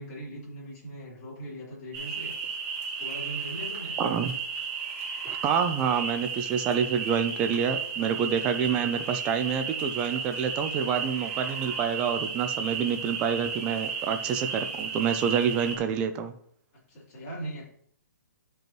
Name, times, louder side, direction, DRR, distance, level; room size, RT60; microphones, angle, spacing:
voice 1, 0.0-2.7 3.0-4.0 16.9-17.7, right 1 dB, 25° left, -7 dB, 3.8 m, -40 dB
sound 1, 1.9-15.8, right 5 dB, 35° right, 2.3 m, -34 dB
voice 2, 4.0-4.3 5.2-16.3, right 7 dB, 10° right, 8 dB, 0.4 m, -27 dB
12.0 x 5.3 x 3.0 m, 0.65 s
hypercardioid pair, 170°, 10 cm